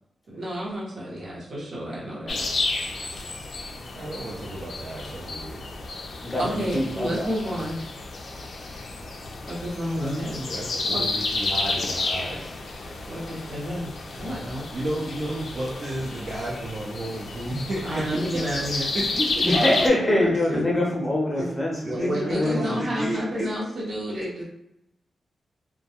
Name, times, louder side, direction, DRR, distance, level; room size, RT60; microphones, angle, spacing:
voice 1, 0.3-2.5 6.4-7.8 9.5-10.5 10.9-11.0 13.1-14.6 17.8-18.9 20.2-20.8 21.4-21.5 21.8-24.4, equal, 65° right, -7 dB, 0.9 m, -30 dB
sound 1, 2.3-19.9, left 3 dB, 55° left, 0.4 m, -31 dB
voice 2, 3.9-5.6 10.5-12.5 14.7-18.0 18.9-20.1 21.3-21.4 21.8-23.6, right 1 dB, 45° right, -5 dB, 0.5 m, -32 dB
voice 3, 6.2-7.3 10.0-10.2 14.2-14.5 19.4-22.8, left 1 dB, 15° left, -3 dB, 0.6 m, -25 dB
2.2 x 2.2 x 2.8 m, 0.86 s
wide cardioid pair, 105°, 0 cm